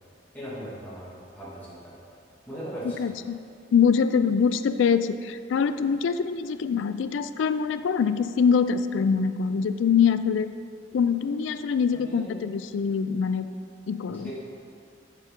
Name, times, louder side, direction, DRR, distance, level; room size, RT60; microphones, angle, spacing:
voice 1, 0.3-2.0 2.5-3.0 11.9-12.4 14.1-14.3, right 1 dB, 10° left, -10 dB, 1.9 m, -39 dB
voice 2, 3.0-3.4 3.7-10.5 10.9-13.5 13.9-14.3, left 6 dB, 80° left, 11 dB, 0.3 m, -24 dB
8.3 x 6.6 x 3.6 m, 2.4 s
head